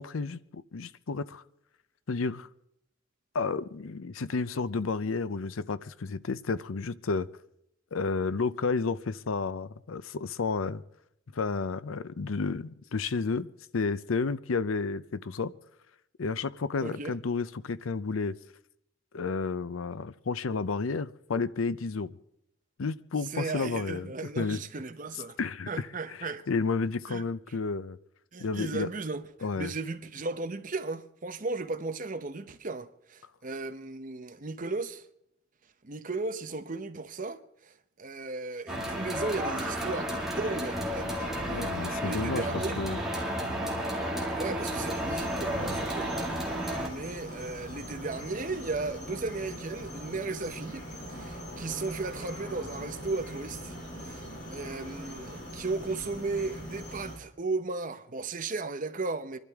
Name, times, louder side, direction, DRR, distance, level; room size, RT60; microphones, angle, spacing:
voice 1, 0.0-1.4 2.1-2.5 3.3-7.3 7.9-10.8 11.3-15.5 16.2-18.3 19.1-22.2 22.8-24.1 24.4-24.6 25.4-25.9 26.2-28.0 28.4-28.9 29.4-29.7 41.4-42.5 42.8-43.0 45.6-45.8, left 4 dB, 85° left, 0.6 m, -31 dB
voice 2, 16.8-17.2 23.3-25.4 25.7-26.5 27.1-27.2 28.3-35.0 35.8-42.8 44.4-46.1 46.7-59.4, right 3 dB, 40° right, 0.8 m, -36 dB
sound 1, 38.7-46.9, equal, ahead, 2.1 m, -32 dB
sound 2, 44.6-57.2, equal, 60° left, 5.8 m, -41 dB
27.0 x 12.0 x 3.6 m
head